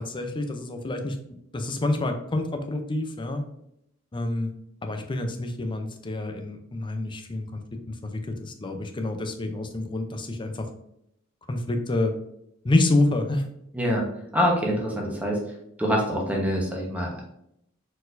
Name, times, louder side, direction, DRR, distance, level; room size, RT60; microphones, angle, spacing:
voice 1, 0.0-3.4 4.1-4.5 4.8-10.7 11.5-12.1 12.6-13.5, left 2 dB, 25° left, 6 dB, 0.5 m, -28 dB
voice 2, 13.7-14.0 14.3-15.4 15.8-17.2, equal, 5° right, -2 dB, 1.0 m, -25 dB
4.3 x 4.2 x 2.6 m, 0.76 s
head